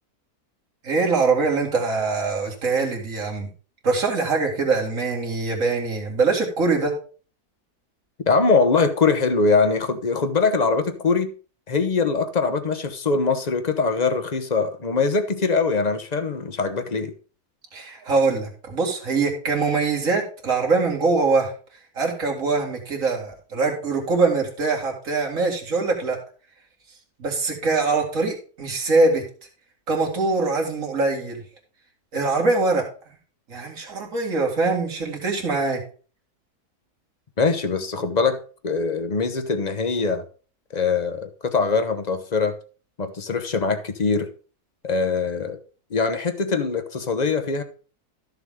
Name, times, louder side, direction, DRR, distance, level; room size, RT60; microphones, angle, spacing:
voice 1, 0.8-3.5 3.8-7.0 17.7-21.5 22.0-26.2 27.2-29.2 29.9-31.4 32.1-32.9 33.5-35.8, right 3 dB, 60° right, 2.5 m, -23 dB
voice 2, 8.3-11.3 11.7-17.1 37.4-38.4 38.6-40.2 40.7-42.6 43.0-44.3 44.8-45.6 45.9-47.6, left 4 dB, 35° left, 0.8 m, -22 dB
13.0 x 7.0 x 3.7 m
omnidirectional pair, 1.6 m